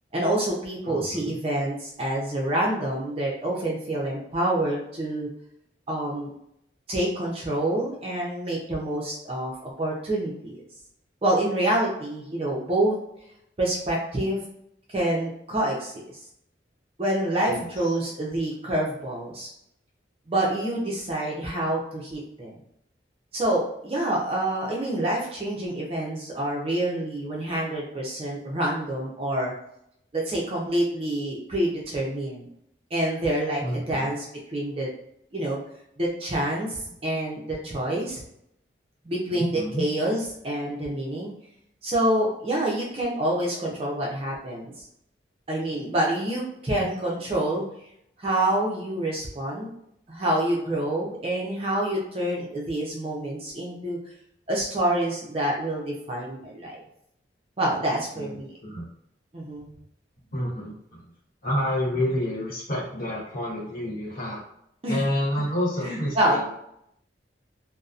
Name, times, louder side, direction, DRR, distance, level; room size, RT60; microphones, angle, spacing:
voice 1, 0.1-5.3 5.9-6.3 6.9-10.6 11.2-13.0 13.6-14.4 14.9-16.0 17.0-19.5 20.3-22.5 23.3-29.5 30.1-32.5 32.9-34.9 35.3-35.6 36.0-38.2 39.0-41.3 41.8-44.7 45.5-47.6 48.2-49.8 50.1-54.0 54.5-56.8 57.6-58.5 59.3-59.7 64.8-65.0 65.8-66.4, right 1 dB, 30° right, -3 dB, 0.5 m, -27 dB
voice 2, 0.8-1.4 17.5-17.9 33.6-34.1 39.3-39.8 45.7-45.8 46.6-46.9 58.1-58.9 60.3-61.1 61.4-64.4 64.9-66.4, left 1 dB, 50° left, -7 dB, 1.0 m, -29 dB
2.7 x 2.0 x 2.4 m, 0.75 s
head